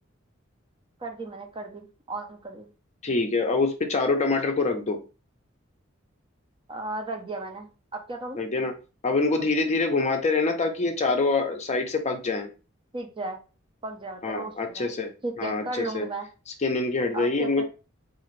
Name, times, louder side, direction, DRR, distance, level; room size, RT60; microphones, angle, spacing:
voice 1, 1.0-2.7 6.7-8.4 12.9-13.4 13.8-14.9 15.2-16.3 17.1-17.7, right 2 dB, 25° right, 0.5 m, -35 dB
voice 2, 3.0-5.0 8.4-8.7 9.0-12.5 14.2-15.1 15.4-16.1 16.6-17.7, left 3 dB, 35° left, 0.6 m, -25 dB
3.7 x 2.5 x 3.1 m
head